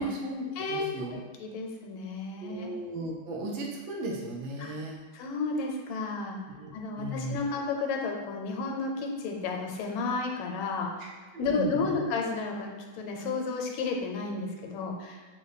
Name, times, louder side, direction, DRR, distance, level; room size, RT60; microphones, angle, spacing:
voice 1, 0.0-1.2 2.4-5.0 6.5-6.7 7.0-7.4 11.0-12.0, right 2 dB, 85° right, -2 dB, 1.5 m, -36 dB
voice 2, 0.6-0.9 1.1-2.7 4.6-4.7 5.1-6.4 6.7-11.1 11.4-15.2, left 4 dB, 90° left, 1 dB, 1.4 m, -32 dB
3.9 x 2.1 x 4.0 m, 1.3 s
omnidirectional pair, 2.2 m